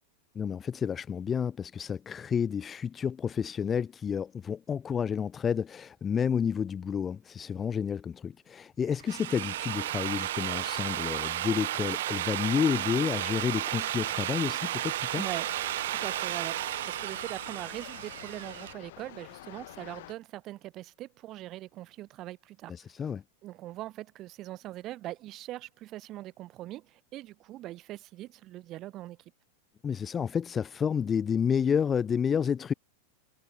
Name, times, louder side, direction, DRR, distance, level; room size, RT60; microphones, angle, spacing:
voice 1, 0.3-15.2 22.7-23.2 29.8-32.7, left 7 dB, 15° left, 0.4 m, -30 dB
Drill, 8.9-18.7, right 14 dB, 70° right, 0.4 m, -33 dB
sound 1, 15.1-20.1, left 16 dB, 65° left, 3.1 m, -48 dB
voice 2, 15.1-15.5 15.9-22.7 23.4-29.2, right 15 dB, 30° right, 5.7 m, -41 dB
supercardioid pair, 155°, 0 cm